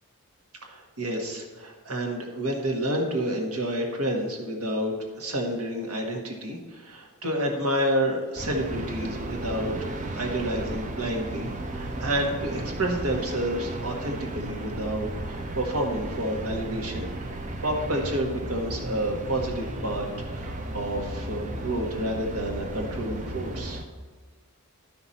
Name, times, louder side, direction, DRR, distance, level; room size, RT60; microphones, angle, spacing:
voice 1, 0.6-11.5 11.7-17.1 17.6-23.8, right 1 dB, 70° right, 1 dB, 1.6 m, -29 dB
sound 1, 8.4-23.8, right 1 dB, 35° right, 0.7 m, -34 dB
11.5 x 6.0 x 4.2 m, 1.4 s
head